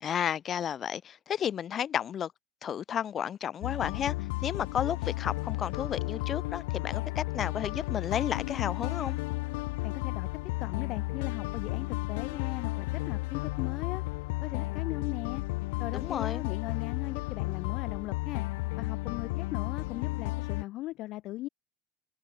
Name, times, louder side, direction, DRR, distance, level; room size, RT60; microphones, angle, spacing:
voice 1, 0.0-2.3 2.6-4.1 4.4-9.2 15.9-16.4, left 9 dB, 25° left, 0.3 m, -32 dB
sound 1, 3.6-20.6, left 24 dB, 85° left, 0.7 m, -33 dB
voice 2, 9.8-10.3 10.6-14.0 14.4-15.4 15.8-18.4 18.8-21.5, left 17 dB, 40° left, 2.2 m, -39 dB
cardioid pair, 175°, 0 cm